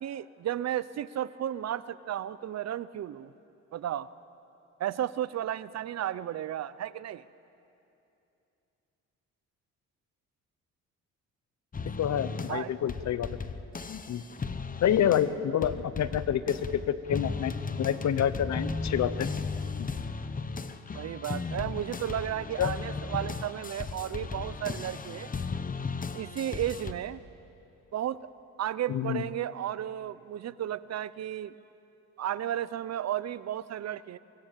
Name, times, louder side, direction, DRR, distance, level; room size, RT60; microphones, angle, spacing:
voice 1, 0.0-3.3 3.7-4.1 4.8-7.2 12.5-12.7 20.9-25.3 26.1-27.2 27.9-28.3 28.6-31.5 32.2-34.2, right 11 dB, 60° right, 17 dB, 0.8 m, -33 dB
sound 1, 11.7-12.6 12.9-15.4 15.6-26.9, left 4 dB, 30° left, 1.1 m, -36 dB
voice 2, 12.0-13.3 13.9-14.2 14.8-17.5 17.8-19.3 19.8-19.9 22.6-22.8 28.9-29.2, left 9 dB, 65° left, 14 dB, 1.0 m, -28 dB
24.5 x 23.0 x 7.5 m, 2.8 s
cardioid pair, 90°, 30 cm